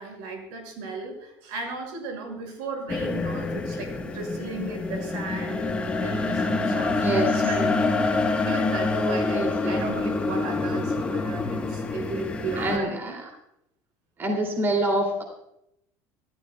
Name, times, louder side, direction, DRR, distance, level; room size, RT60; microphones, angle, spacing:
voice 1, 0.0-7.0 7.3-13.2, right 3 dB, 90° right, 2 dB, 6.0 m, -35 dB
sound 1, 2.9-12.8, left 3 dB, 15° left, 1.3 m, -26 dB
voice 2, 7.0-7.4 9.3-9.8 12.6-13.3 14.2-15.2, right 1 dB, 30° right, 2 dB, 2.7 m, -26 dB
26.5 x 13.5 x 2.3 m, 0.80 s
cardioid pair, 145°, 8 cm